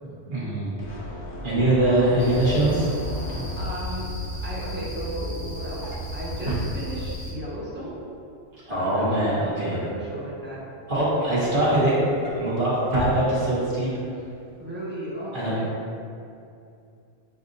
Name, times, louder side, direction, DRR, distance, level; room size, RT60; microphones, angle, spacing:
voice 1, 0.3-0.8 1.4-2.9 3.3-3.4 8.7-9.8 10.9-11.9 12.3-13.9 15.3-15.6, right 1 dB, 45° right, -9 dB, 1.4 m, -22 dB
sound 1, 0.8-4.0, left 1 dB, 50° left, 1.0 m, -37 dB
sound 2, 2.2-7.3, left 1 dB, 90° left, 1.6 m, -33 dB
Drawer open or close, 2.6-7.4 7.8-8.1 8.4-10.6 11.0-14.0 14.3-14.5 14.8-14.9, right 2 dB, 80° right, 1.5 m, -37 dB
voice 2, 3.2-4.1 4.4-8.0 8.7-10.6 14.6-15.7, right 1 dB, 10° right, -8 dB, 0.9 m, -35 dB
7.5 x 2.6 x 2.6 m, 2.5 s
omnidirectional pair, 1.3 m